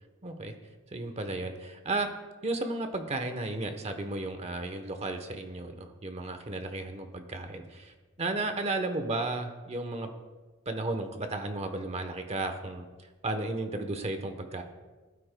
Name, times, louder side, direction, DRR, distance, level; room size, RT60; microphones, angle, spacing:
voice 1, 0.2-0.6 0.9-2.1 2.4-10.1 10.7-12.9 13.2-14.6, right 2 dB, 30° right, 6 dB, 0.9 m, -34 dB
17.5 x 8.4 x 2.2 m, 1.3 s
head